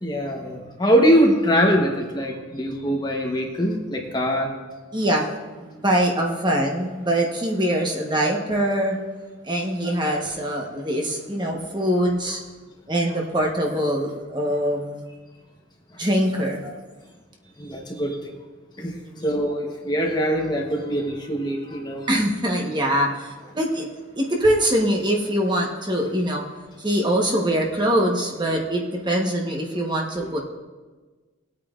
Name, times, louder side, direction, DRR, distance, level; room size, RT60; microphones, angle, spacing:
voice 1, 0.0-4.5 17.6-18.3 18.8-18.9 19.2-22.1 30.2-30.3, equal, 20° left, 1 dB, 0.9 m, -22 dB
voice 2, 4.9-5.3 5.6-9.0 9.4-12.4 12.9-15.0 16.0-16.8 19.0-19.3 22.1-23.9 24.2-26.4 26.8-30.4, equal, 20° right, -1 dB, 1.0 m, -23 dB
19.0 x 8.7 x 2.4 m, 1.3 s
head